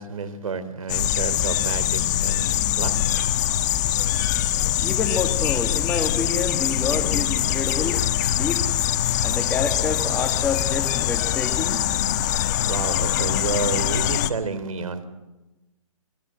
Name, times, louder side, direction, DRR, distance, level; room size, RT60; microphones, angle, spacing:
voice 1, 0.0-2.9 12.7-15.0, right 4 dB, 70° right, 13 dB, 3.5 m, -30 dB
sound 1, 0.9-14.3, left 11 dB, 30° left, 1.3 m, -23 dB
voice 2, 4.8-8.0 8.3-8.6 9.2-11.8, left 4 dB, 5° left, 5 dB, 1.7 m, -28 dB
26.5 x 21.0 x 7.7 m, 1.1 s
hypercardioid pair, 150°, 18 cm